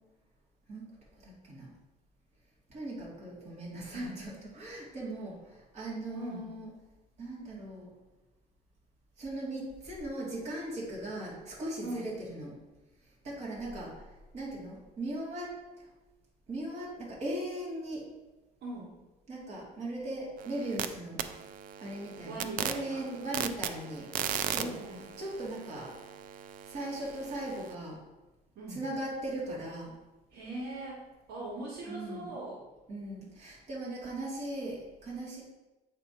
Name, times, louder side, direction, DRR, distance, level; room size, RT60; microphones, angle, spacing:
voice 1, 1.2-1.7 2.7-6.7 7.2-7.9 9.2-12.6 13.2-13.9 14.3-15.5 16.5-18.0 19.3-21.2 21.8-24.1 24.4-24.7 25.2-25.9 26.7-28.0 28.7-29.9 31.9-32.3 32.9-35.4, right 1 dB, 45° right, -5 dB, 2.0 m, -38 dB
voice 2, 6.1-6.5 11.8-12.1 18.6-18.9 22.2-23.1 24.6-25.0 28.6-28.8 30.3-31.0 31.3-32.6, right 2 dB, 80° right, -5 dB, 1.6 m, -40 dB
sound 1, 20.4-20.9 21.2-27.7, right 9 dB, 60° right, 0.4 m, -38 dB
7.8 x 2.9 x 5.0 m, 1.1 s
cardioid pair, 175°, 16 cm